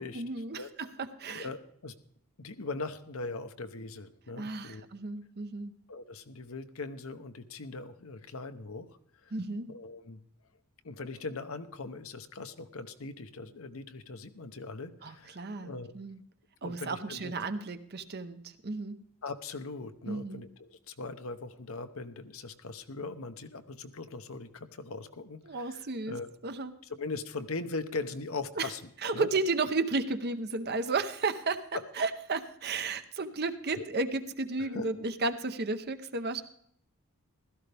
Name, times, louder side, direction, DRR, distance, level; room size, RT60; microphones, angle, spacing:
voice 1, 0.0-1.5 4.4-5.7 9.3-9.7 15.0-16.2 16.6-19.0 20.1-20.4 25.5-26.8 28.6-28.7 29.0-31.7 32.0-36.4, right 3 dB, 45° right, 10 dB, 0.8 m, -33 dB
voice 2, 1.3-1.9 2.4-4.8 5.9-8.9 9.2-9.3 9.7-10.2 10.8-15.9 16.6-17.3 19.2-26.3 26.9-29.3 31.7-31.8 33.8-33.9 34.6-34.9, left 3 dB, 65° left, 9 dB, 0.9 m, -40 dB
16.0 x 13.0 x 3.4 m, 0.67 s
head